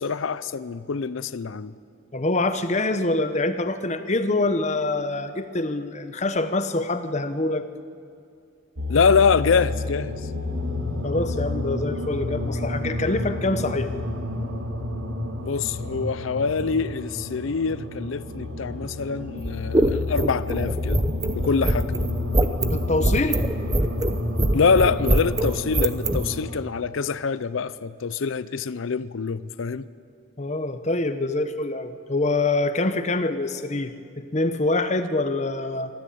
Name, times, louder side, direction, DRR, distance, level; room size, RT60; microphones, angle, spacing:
voice 1, 0.0-1.7 8.9-10.2 15.4-21.0 21.3-21.9 24.5-29.9, left 5 dB, 70° left, 0.5 m, -25 dB
voice 2, 2.1-7.6 11.0-13.9 22.7-23.4 30.4-35.9, left 2 dB, 35° left, 1.0 m, -25 dB
sound 1, 8.8-26.6, left 2 dB, 90° right, 2.2 m, -30 dB
sound 2, 19.4-26.3, right 1 dB, 20° right, 0.7 m, -23 dB
24.5 x 13.5 x 8.6 m
head